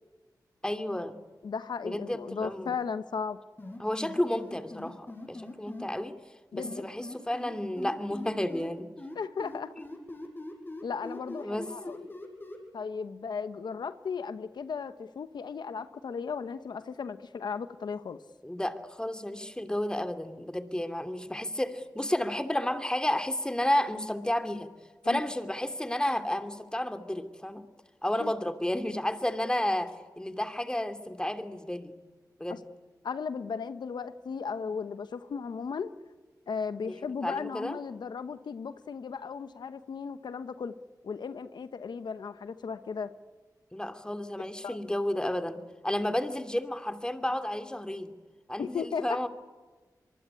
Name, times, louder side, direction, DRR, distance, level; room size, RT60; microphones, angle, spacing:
voice 1, 0.6-1.2 1.8-2.7 3.8-6.1 6.5-8.9 11.4-11.9 18.4-24.7 25.0-27.6 28.0-31.9 32.4-32.6 36.9-37.0 37.2-37.8 43.7-48.1 48.5-49.3, left 1 dB, 10° left, 8 dB, 2.7 m, -31 dB
voice 2, 1.4-3.4 6.5-6.8 9.1-9.7 10.8-12.1 12.7-18.2 25.0-25.2 28.2-28.3 32.5-32.6 33.0-35.9 36.5-40.7 41.0-43.1 44.6-44.8 48.6-49.3, left 5 dB, 90° left, 11 dB, 1.1 m, -36 dB
sound 1, 3.6-5.9 6.6-8.7 9.0-12.6, left 2 dB, 30° left, 7.8 m, -41 dB
25.5 x 23.5 x 9.8 m, 1.3 s
cardioid pair, 60°, 7 cm